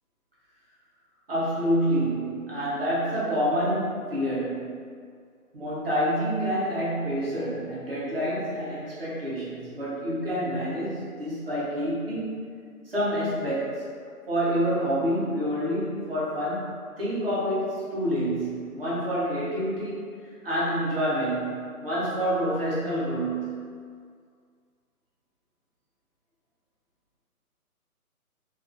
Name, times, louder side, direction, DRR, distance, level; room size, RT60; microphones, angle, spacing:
voice 1, 1.3-4.7 5.5-12.4 12.9-13.8 14.3-16.7 17.0-20.1 20.4-23.6, equal, 40° right, -8 dB, 0.7 m, -27 dB
2.4 x 2.2 x 2.5 m, 2.1 s
hypercardioid pair, 160°, 45 cm